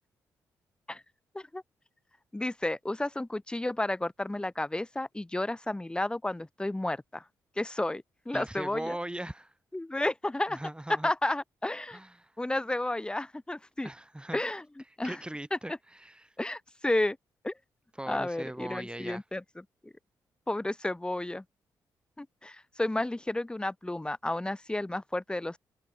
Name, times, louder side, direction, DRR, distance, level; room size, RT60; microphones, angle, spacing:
voice 1, 2.3-7.2 7.6-9.0 9.7-10.6 11.0-12.0 12.4-13.9 14.3-14.6 15.0-15.2 15.5-15.6 16.4-17.2 17.4-17.5 18.1-19.4 19.8-19.9 20.5-21.4 22.2-25.6, left 1 dB, 10° left, 0.5 m, -32 dB
voice 2, 8.3-9.5 10.5-11.1 11.9-12.4 13.8-14.4 15.0-16.3 18.0-19.2, right 1 dB, 10° right, 1.6 m, -39 dB
open air
hypercardioid pair, 45°, 9 cm